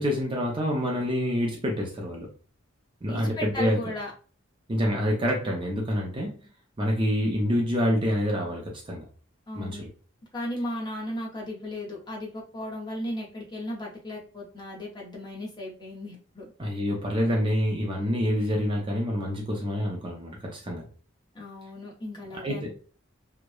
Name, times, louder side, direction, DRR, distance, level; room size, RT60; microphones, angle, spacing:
voice 1, 0.0-2.3 3.0-3.8 4.7-6.4 6.8-9.0 9.6-9.9 16.6-20.8 22.4-22.7, equal, 25° right, -1 dB, 0.5 m, -27 dB
voice 2, 3.1-4.1 9.5-9.8 10.3-16.4 21.3-22.7, left 1 dB, 20° left, -3 dB, 0.7 m, -35 dB
2.9 x 2.1 x 2.2 m, 0.39 s
head